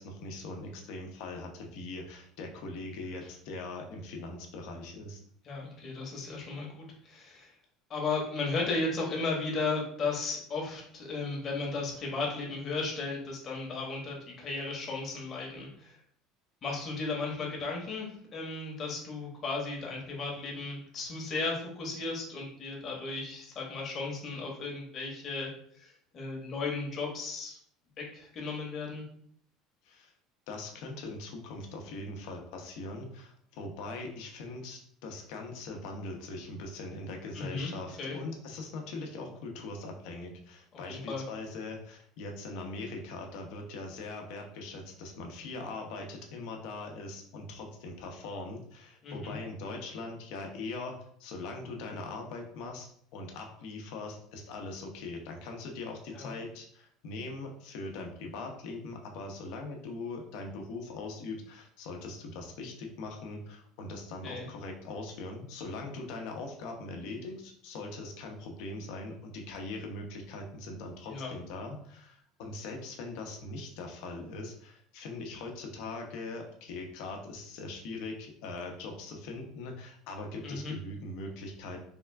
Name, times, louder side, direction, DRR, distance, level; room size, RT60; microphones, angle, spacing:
voice 1, 0.0-5.2 29.8-30.1 30.5-81.8, left 2 dB, 70° left, 2 dB, 0.8 m, -41 dB
voice 2, 5.4-7.5 7.9-16.0 16.6-25.5 25.7-27.6 28.0-29.0 37.3-37.7 38.0-38.2 40.9-41.2 49.0-49.4 56.1-56.3 64.2-64.5 71.1-71.3 80.4-80.7, left 3 dB, 30° left, -1 dB, 1.0 m, -35 dB
3.6 x 2.3 x 3.3 m, 0.64 s
cardioid pair, 155°, 0 cm